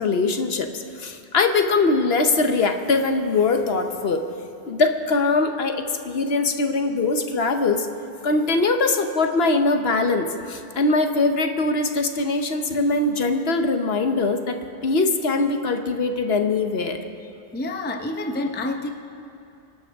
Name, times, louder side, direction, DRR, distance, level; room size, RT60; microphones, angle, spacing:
voice 1, 0.0-4.2 4.7-7.9 8.2-14.6 14.8-17.0, left 3 dB, 60° left, 6 dB, 1.1 m, -22 dB
voice 2, 17.5-18.9, left 2 dB, 10° left, 5 dB, 0.6 m, -28 dB
25.0 x 12.0 x 3.5 m, 2.8 s
omnidirectional pair, 1.2 m